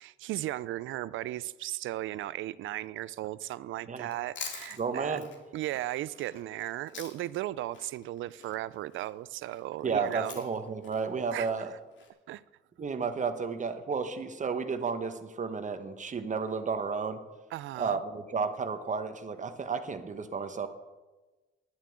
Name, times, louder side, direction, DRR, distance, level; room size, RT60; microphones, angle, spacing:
voice 1, 0.0-5.2 5.5-10.4 11.3-11.5 12.3-12.4 17.5-18.0, right 14 dB, 80° right, 0.5 m, -36 dB
Chewing mastication, 4.0-7.4 7.7-12.1, left 5 dB, 70° left, 2.4 m, -46 dB
voice 2, 4.8-5.2 9.8-11.7 12.8-17.2 17.8-20.7, right 5 dB, 40° right, 1.2 m, -32 dB
10.5 x 7.5 x 8.8 m
cardioid pair, 90°, 20 cm